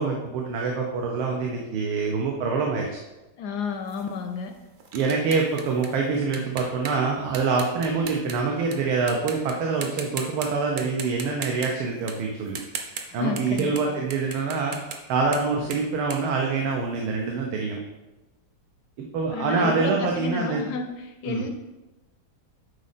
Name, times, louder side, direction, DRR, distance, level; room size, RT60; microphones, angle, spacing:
voice 1, 0.0-2.9 4.9-12.6 13.1-14.8 15.1-17.8 19.0-20.6 21.3-21.4, right 4 dB, 85° right, 0 dB, 1.7 m, -25 dB
voice 2, 3.4-4.5 13.1-14.0 14.3-14.5 19.3-21.5, left 5 dB, 75° left, 6 dB, 0.9 m, -31 dB
sound 1, 3.9-8.8 9.1-9.5 9.8-10.5 10.8-17.1, right 5 dB, 55° right, 0.9 m, -38 dB
10.0 x 4.1 x 4.2 m, 1.1 s
omnidirectional pair, 2.2 m